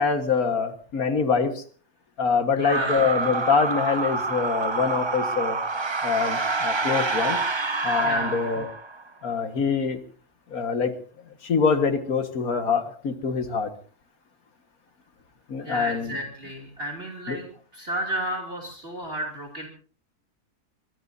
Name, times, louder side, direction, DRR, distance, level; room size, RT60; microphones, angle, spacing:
voice 1, 0.0-1.6 2.2-5.6 6.0-7.4 7.8-8.7 9.2-10.0 10.5-10.9 11.4-13.7 15.5-16.2 17.3-17.4, left 5 dB, 85° left, 7 dB, 2.1 m, -24 dB
sound 1, 2.6-9.0, right 3 dB, 25° right, 0.8 m, -27 dB
voice 2, 2.6-2.9 8.0-8.4 15.6-19.7, right 1 dB, 40° right, 0 dB, 3.1 m, -32 dB
23.5 x 21.5 x 2.7 m, 0.41 s
omnidirectional pair, 1.5 m